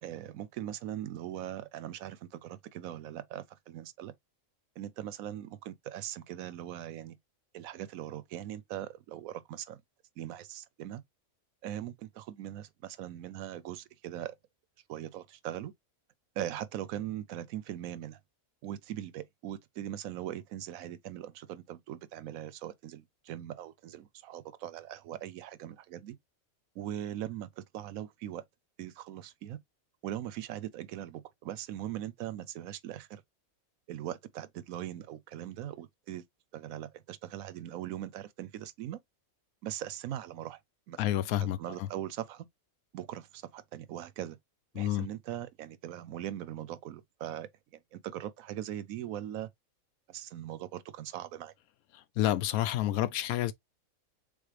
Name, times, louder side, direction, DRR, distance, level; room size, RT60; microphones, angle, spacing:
voice 1, 0.0-4.1 4.8-7.2 7.5-9.8 10.2-11.0 11.6-14.4 14.9-15.7 16.4-18.2 18.6-26.2 26.8-28.4 28.8-29.6 30.0-33.2 33.9-36.2 36.5-39.0 39.6-40.6 40.9-41.0 41.4-42.5 42.9-44.4 44.7-49.5 50.1-51.5, right 12 dB, 80° right, 1.0 m, -40 dB
voice 2, 41.0-41.6 44.8-45.1 52.2-53.5, left 13 dB, 85° left, 1.1 m, -29 dB
3.9 x 3.6 x 3.2 m
omnidirectional pair, 1.5 m